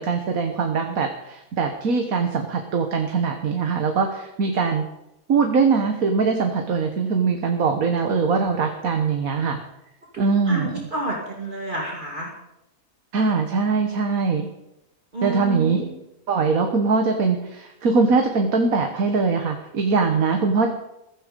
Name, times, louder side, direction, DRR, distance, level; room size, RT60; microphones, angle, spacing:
voice 1, 0.0-4.8 5.3-9.6 10.2-10.8 13.1-14.5 15.2-15.9 16.3-20.7, right 4 dB, 70° right, 4 dB, 1.7 m, -22 dB
voice 2, 10.1-12.3 15.1-15.9, right 2 dB, 35° right, -2 dB, 2.7 m, -30 dB
15.5 x 14.0 x 5.2 m, 0.89 s
omnidirectional pair, 1.5 m